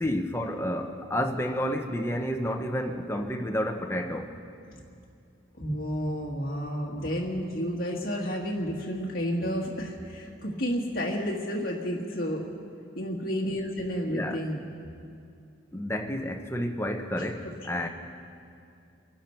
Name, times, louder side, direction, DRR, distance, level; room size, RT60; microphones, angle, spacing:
voice 1, 0.0-4.3 14.1-14.4 15.7-17.9, equal, 10° left, 4 dB, 0.8 m, -30 dB
voice 2, 5.6-12.5 13.0-14.6, equal, 45° left, -3 dB, 1.6 m, -31 dB
24.0 x 11.5 x 4.5 m, 2.5 s
head